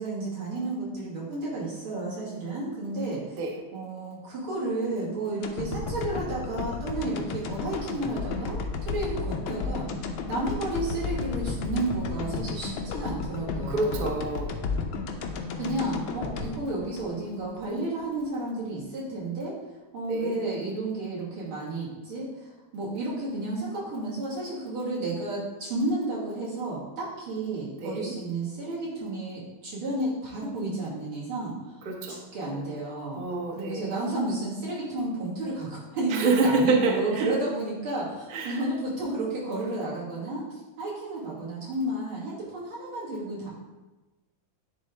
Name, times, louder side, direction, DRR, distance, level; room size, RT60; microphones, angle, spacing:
voice 1, 0.0-3.4 3.7-14.1 15.3-19.6 19.9-33.2 33.5-43.5, right 2 dB, 90° right, -7 dB, 3.1 m, -32 dB
sound 1, 5.4-17.7 18.0-18.1, left 4 dB, 75° left, 1.4 m, -33 dB
voice 2, 13.7-14.5 20.1-20.3 27.8-28.2 31.8-32.2 32.5-32.6 33.2-33.9 36.1-37.3 38.3-38.6, right 3 dB, 50° right, 1 dB, 0.6 m, -26 dB
10.0 x 3.7 x 3.3 m, 1.1 s
omnidirectional pair, 2.2 m